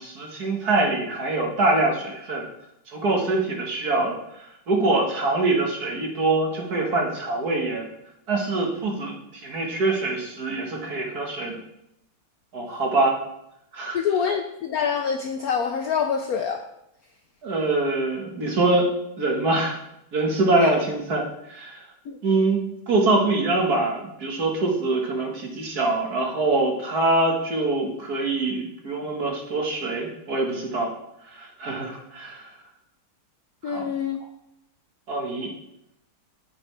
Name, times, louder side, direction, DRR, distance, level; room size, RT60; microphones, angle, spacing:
voice 1, 0.0-2.5 2.9-7.9 8.3-11.6 12.5-13.2 13.7-14.0 17.4-18.9 19.2-19.8 20.1-21.9 22.2-31.0 31.3-32.5 33.6-33.9 35.1-35.5, right 2 dB, 50° right, 0 dB, 1.9 m, -24 dB
voice 2, 13.9-16.6 20.5-20.7 22.1-22.2 33.6-34.2, left 7 dB, 85° left, 5 dB, 0.8 m, -25 dB
9.5 x 8.6 x 3.3 m, 0.82 s
omnidirectional pair, 2.3 m